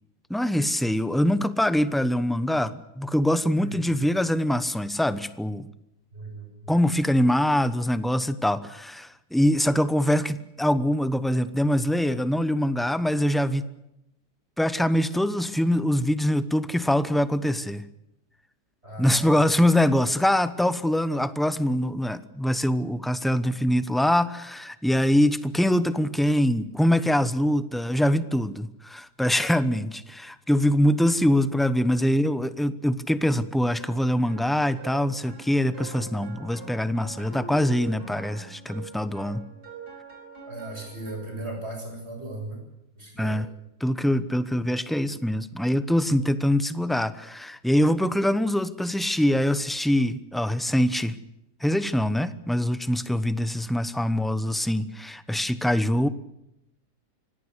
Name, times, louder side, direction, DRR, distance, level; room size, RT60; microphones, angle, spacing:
voice 1, 0.3-5.6 6.7-13.7 14.6-17.8 19.0-39.4 43.2-43.5 43.8-51.2 51.6-56.1, equal, ahead, 13 dB, 0.6 m, -24 dB
voice 2, 3.6-3.9 6.1-6.8 18.8-19.4 40.5-42.6 43.0-43.5, right 1 dB, 40° right, 3 dB, 7.5 m, -37 dB
sound 1, 33.8-41.5, right 4 dB, 70° right, 5.4 m, -44 dB
25.0 x 18.0 x 8.2 m, 0.84 s
omnidirectional pair, 1.7 m